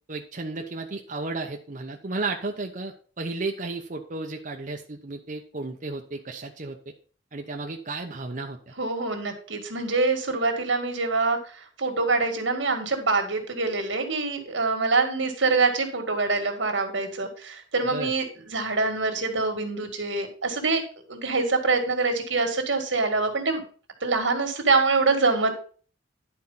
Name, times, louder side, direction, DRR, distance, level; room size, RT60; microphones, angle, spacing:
voice 1, 0.1-6.8 7.3-8.7 17.9-18.1, right 3 dB, 45° right, 2 dB, 0.9 m, -33 dB
voice 2, 8.8-11.4 11.8-20.8 21.1-23.6 24.0-25.5, right 3 dB, 85° right, 5 dB, 2.1 m, -25 dB
11.0 x 4.7 x 5.7 m, 0.41 s
head